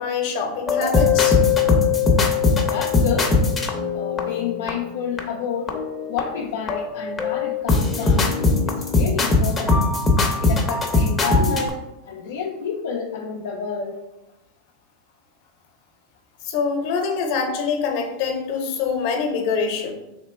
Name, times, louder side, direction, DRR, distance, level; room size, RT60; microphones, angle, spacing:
voice 1, 0.0-1.4 16.4-19.9, left 5 dB, 55° left, 4 dB, 0.8 m, -24 dB
sound 1, 0.7-4.7 5.2-5.3 5.7-6.4 6.7-11.7, left 4 dB, 15° left, 0.7 m, -20 dB
voice 2, 2.7-3.4 3.9-5.7 6.1-8.3 8.7-9.8 10.4-11.8 12.1-13.9, left 6 dB, 75° left, -1 dB, 0.5 m, -29 dB
3.3 x 2.9 x 4.2 m, 0.95 s
hypercardioid pair, 115°, 0 cm